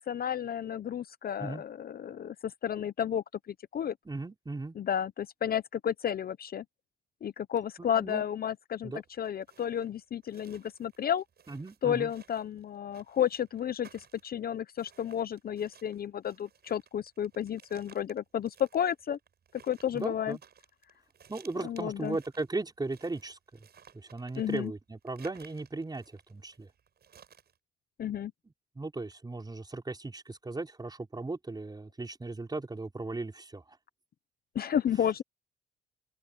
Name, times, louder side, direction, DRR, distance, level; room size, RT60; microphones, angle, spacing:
voice 1, 0.0-3.9 4.8-6.6 7.2-8.9 9.2-11.2 11.8-19.2 19.6-20.4 21.6-22.2 24.4-24.7 28.0-28.3 34.5-35.2, left 9 dB, 50° left, 0.7 m, -32 dB
voice 2, 4.0-4.7 7.8-8.2 8.8-9.0 11.5-12.1 19.9-20.4 21.3-23.6 23.9-26.0 26.3-26.7 28.7-33.6, right 3 dB, 20° right, 5.0 m, -37 dB
sound 1, 9.0-27.6, right 8 dB, 55° right, 7.4 m, -59 dB
open air
cardioid pair, 90°, 20 cm